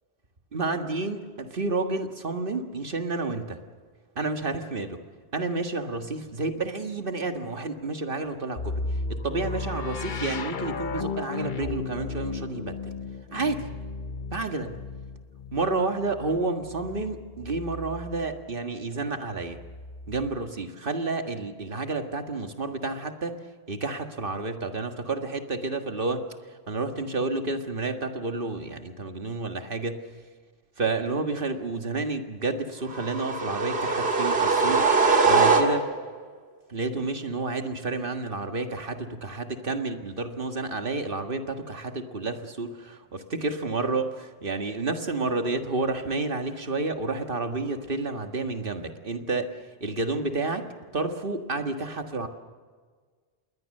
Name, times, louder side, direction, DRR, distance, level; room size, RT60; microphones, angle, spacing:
voice 1, 0.5-3.6 4.2-5.0 5.3-8.8 9.1-12.8 13.3-13.7 14.3-14.8 15.5-19.6 20.1-23.3 23.7-26.2 26.7-30.0 30.8-34.8 35.2-35.9 36.7-49.5 49.8-50.7 50.9-52.3, right 3 dB, 60° right, 6 dB, 1.9 m, -30 dB
sound 1, 8.6-18.4 19.4-20.4, left 4 dB, 55° left, 1.1 m, -35 dB
sound 2, 32.9-36.1, right 4 dB, 80° right, 2.1 m, -22 dB
27.5 x 21.5 x 6.6 m, 1.5 s
omnidirectional pair, 1.0 m